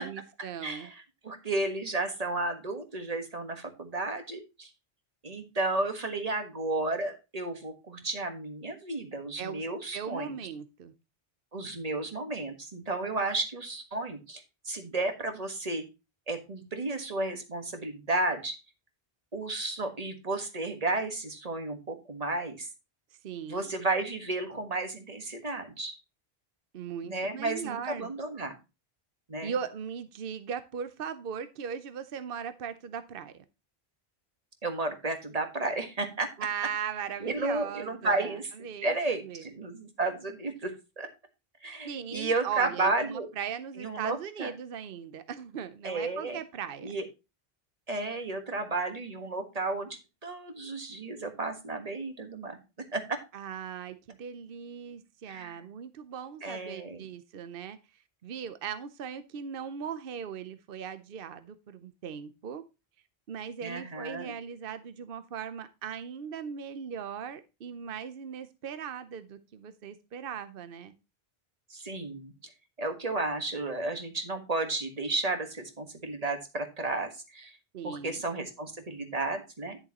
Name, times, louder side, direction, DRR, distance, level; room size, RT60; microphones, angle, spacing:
voice 1, 0.0-0.9 9.4-10.9 23.2-23.7 26.7-28.1 29.4-33.4 36.4-39.5 41.8-46.9 53.3-57.8 58.2-62.6 63.3-70.9 77.7-78.2, right 7 dB, 65° right, 12 dB, 0.9 m, -38 dB
voice 2, 0.6-4.7 5.2-10.3 11.5-15.8 16.3-18.5 19.3-22.7 23.5-26.0 27.0-28.6 29.3-29.5 34.6-36.3 37.2-38.5 38.8-41.1 41.6-43.3 43.8-44.5 45.8-46.4 46.8-47.0 47.9-52.6 52.9-53.2 55.3-55.6 56.4-57.0 63.6-64.3 71.7-72.3 72.8-77.6 77.8-79.8, right 2 dB, 40° right, 6 dB, 1.6 m, -33 dB
10.5 x 6.9 x 2.9 m, 0.27 s
omnidirectional pair, 1.0 m